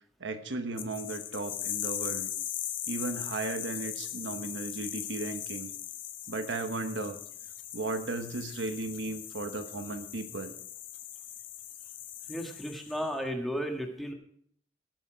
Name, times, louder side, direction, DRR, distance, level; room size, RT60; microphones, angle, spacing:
voice 1, 0.2-2.3 2.9-5.7 6.3-7.2 7.7-10.5, right 2 dB, 70° right, 8 dB, 1.1 m, -35 dB
sound 1, 0.8-13.1, left 11 dB, 70° left, 1.0 m, -39 dB
voice 2, 12.3-14.1, equal, ahead, 3 dB, 1.6 m, -34 dB
17.0 x 7.0 x 5.1 m, 0.64 s
head